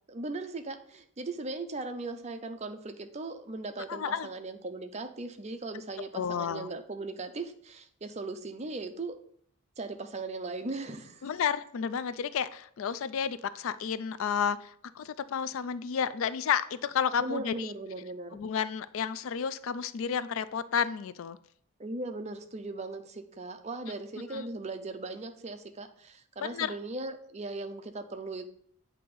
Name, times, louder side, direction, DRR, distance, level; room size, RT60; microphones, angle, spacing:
voice 1, 0.1-9.2 9.8-11.3 17.2-18.4 21.8-28.4, right 2 dB, 30° right, 7 dB, 0.5 m, -38 dB
voice 2, 3.9-4.3 6.1-6.7 11.2-17.7 18.3-21.4 24.3-24.4 26.4-26.7, left 7 dB, 60° left, 15 dB, 0.3 m, -31 dB
8.4 x 2.8 x 5.3 m, 0.62 s
head